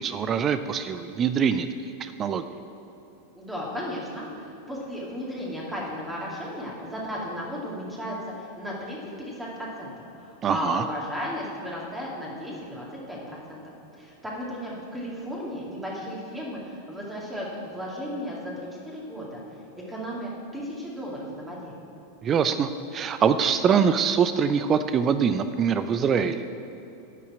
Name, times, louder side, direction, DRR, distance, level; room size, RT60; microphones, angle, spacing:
voice 1, 0.0-1.7 2.0-2.4 10.4-10.8 22.2-26.5, right 7 dB, 25° right, 11 dB, 0.4 m, -24 dB
voice 2, 3.4-9.9 10.2-13.6 14.0-18.5 18.8-19.4 19.9-21.8, equal, 10° right, -5 dB, 2.4 m, -35 dB
12.5 x 5.6 x 8.6 m, 2.8 s
figure-of-eight pair, 90°, 0 cm